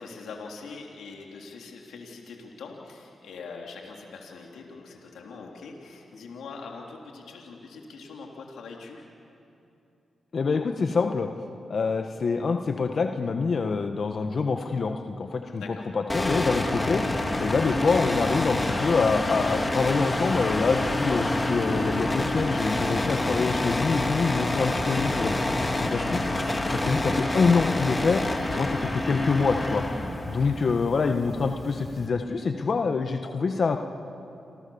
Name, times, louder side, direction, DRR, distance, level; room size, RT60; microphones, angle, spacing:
voice 1, 0.0-9.0 15.5-15.9 28.5-28.8 30.3-30.5, left 4 dB, 90° left, 0 dB, 3.2 m, -42 dB
voice 2, 10.3-11.3 11.7-17.0 17.4-25.3 25.6-26.2 26.7-28.2 28.6-28.7 28.9-29.8 30.2-33.8, left 4 dB, 55° left, 5 dB, 1.4 m, -25 dB
sound 1, 16.1-32.1, left 1 dB, 20° left, 3.4 m, -27 dB
28.0 x 27.0 x 7.2 m, 2.7 s
cardioid pair, 65°, 0 cm